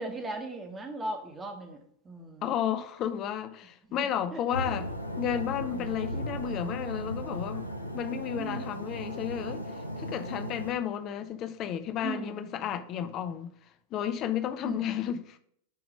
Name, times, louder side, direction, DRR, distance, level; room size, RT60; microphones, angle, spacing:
voice 1, 0.0-1.8 2.0-2.4 3.9-4.4 5.7-6.0 8.4-8.7 12.0-12.4 14.6-15.0, right 2 dB, 20° right, 1.3 m, -38 dB
voice 2, 2.4-4.9 5.2-7.7 7.9-9.6 10.0-13.5 13.9-15.4, left 9 dB, 35° left, 0.6 m, -32 dB
sound 1, 4.5-10.7, equal, 90° left, 0.7 m, -36 dB
8.1 x 3.0 x 5.2 m
figure-of-eight pair, 90°, 0 cm